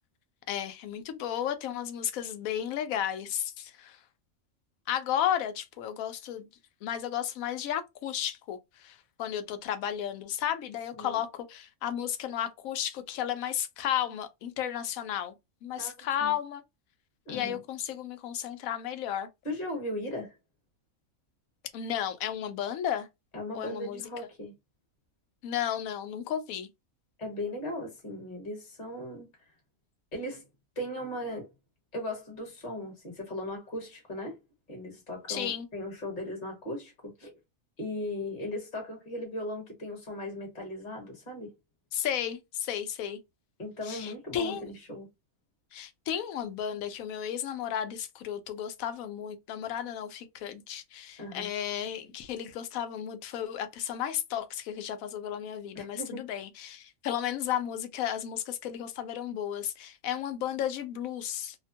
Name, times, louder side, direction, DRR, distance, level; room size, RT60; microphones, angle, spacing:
voice 1, 0.5-4.0 4.9-6.5 6.8-15.3 15.6-16.6 17.3-19.3 21.7-23.1 23.5-24.0 25.4-26.7 35.3-35.7 41.9-43.2 43.8-44.7 45.7-61.6, left 10 dB, 85° left, 1.0 m, -33 dB
voice 2, 17.3-17.6 19.4-20.4 23.3-24.5 27.2-29.3 30.1-30.4 30.7-31.5 31.9-34.4 34.7-37.3 37.8-41.5 43.6-45.1 51.2-51.5 55.7-56.2, left 1 dB, 35° left, 1.3 m, -37 dB
2.8 x 2.1 x 2.6 m
omnidirectional pair, 1.4 m